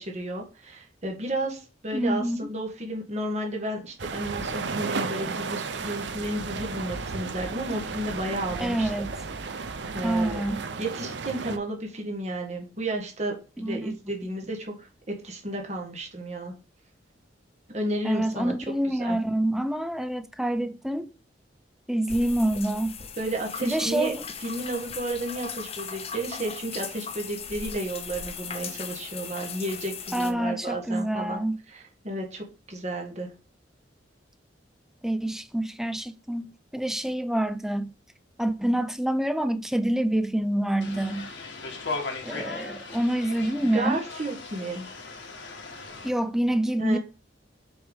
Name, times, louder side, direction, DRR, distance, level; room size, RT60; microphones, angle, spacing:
voice 1, 0.0-8.9 9.4-9.7 9.9-10.4 10.8-16.5 17.7-18.5 19.0-19.2 23.2-24.1 24.4-31.4 31.7-33.3 43.6-44.8 46.8-47.0, right 1 dB, 40° right, 1.6 m, -32 dB
voice 2, 1.9-2.4 8.6-9.1 10.0-10.6 13.6-13.9 18.0-21.1 21.9-22.9 23.6-24.2 30.1-31.5 35.0-37.9 38.4-41.3 42.2-44.0 46.0-47.0, right 1 dB, 5° right, 0.5 m, -27 dB
sound 1, 4.0-11.6, right 4 dB, 75° right, 0.7 m, -33 dB
sound 2, 22.1-30.3, left 6 dB, 35° left, 0.7 m, -38 dB
sound 3, 40.8-46.1, left 3 dB, 85° left, 1.5 m, -37 dB
6.2 x 4.8 x 3.6 m
head